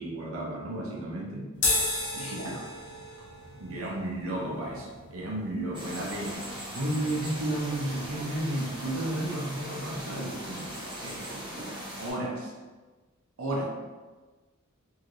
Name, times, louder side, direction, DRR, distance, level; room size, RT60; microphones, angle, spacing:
voice 1, 0.0-1.5 2.1-2.6 3.6-6.4 6.7-12.5 13.4-13.6, right 1 dB, 80° right, -1 dB, 0.7 m, -33 dB
sound 1, 1.5-8.1, left 3 dB, 55° left, 0.7 m, -35 dB
voice 2, 2.2-2.6 11.5-11.7, left 1 dB, 25° left, -2 dB, 0.4 m, -45 dB
sound 2, 5.7-12.1, equal, 25° right, 0.8 m, -39 dB
3.2 x 2.7 x 2.5 m, 1.3 s
head